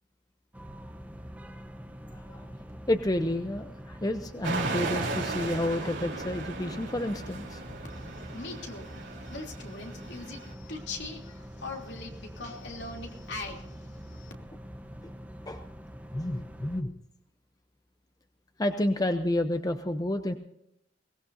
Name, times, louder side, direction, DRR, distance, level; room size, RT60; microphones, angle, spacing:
sound 1, 0.5-16.8, equal, 10° right, 1.0 m, -45 dB
voice 1, 2.1-2.5 2.9-7.6 15.5-15.6 16.1-17.0 18.6-20.3, left 1 dB, 20° left, 7 dB, 0.7 m, -30 dB
sound 2, 4.4-10.5, right 3 dB, 80° right, 3.8 m, -36 dB
voice 2, 7.9-14.3, left 3 dB, 70° left, 0 dB, 3.2 m, -41 dB
22.5 x 18.5 x 2.8 m, 0.76 s
head